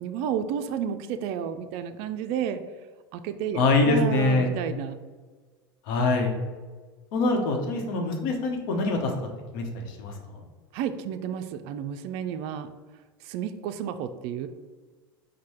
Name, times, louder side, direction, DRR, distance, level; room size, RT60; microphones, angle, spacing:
voice 1, 0.0-2.6 3.1-4.9 10.7-12.7 13.2-14.5, right 8 dB, 60° right, 9 dB, 0.4 m, -31 dB
voice 2, 3.5-4.5 5.9-6.3 7.1-9.1 9.5-10.4, left 3 dB, 65° left, 2 dB, 0.9 m, -24 dB
4.7 x 2.2 x 4.3 m, 1.4 s
hypercardioid pair, 90°, 12 cm